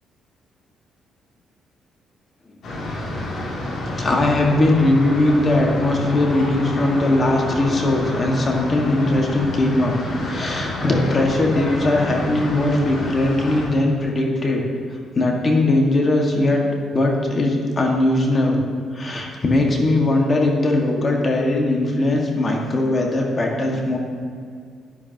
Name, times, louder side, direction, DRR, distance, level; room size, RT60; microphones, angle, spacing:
sound 1, 2.6-13.7, left 1 dB, 70° left, 2.6 m, -28 dB
voice 1, 3.9-9.9 10.2-14.6 14.9-16.6 16.9-18.6 18.9-24.0, left 2 dB, 35° left, 0 dB, 1.7 m, -20 dB
10.5 x 10.5 x 2.9 m, 2.2 s
cardioid pair, 90°, 0 cm